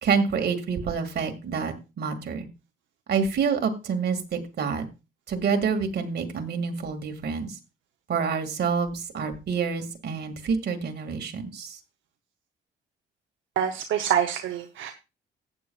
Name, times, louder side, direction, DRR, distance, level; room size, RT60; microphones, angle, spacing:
voice 1, 0.0-2.5 3.1-4.9 5.3-7.6 8.1-11.8, right 5 dB, 55° right, 5 dB, 2.0 m, -27 dB
voice 2, 13.6-14.9, right 9 dB, 75° right, 5 dB, 0.8 m, -26 dB
14.5 x 9.0 x 2.3 m, 0.27 s
cardioid pair, 90°, 20 cm